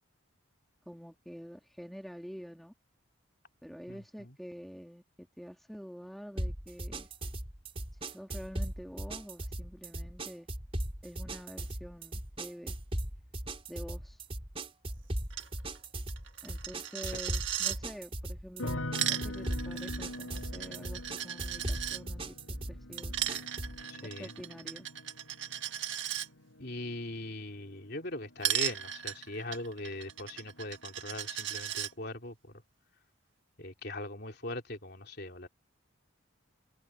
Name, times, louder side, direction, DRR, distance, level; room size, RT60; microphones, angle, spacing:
voice 1, 0.8-2.7 3.6-7.1 8.0-10.5 11.0-12.7 13.7-14.2 16.4-22.3 22.7-23.1 24.0-24.9, equal, ahead, 1.7 m, -47 dB
voice 2, 3.9-4.4 17.1-17.2 23.9-24.3 26.6-32.6 33.6-35.5, left 2 dB, 50° left, 3.4 m, -41 dB
sound 1, 6.4-23.8, right 1 dB, 25° right, 4.4 m, -38 dB
Coin (dropping), 15.3-15.5 15.8-15.9 16.1-17.8 18.7-22.0 23.0-26.3 28.4-31.9, right 11 dB, 60° right, 1.7 m, -36 dB
sound 2, 18.6-29.7 29.9-30.7, left 1 dB, 85° left, 6.1 m, -44 dB
head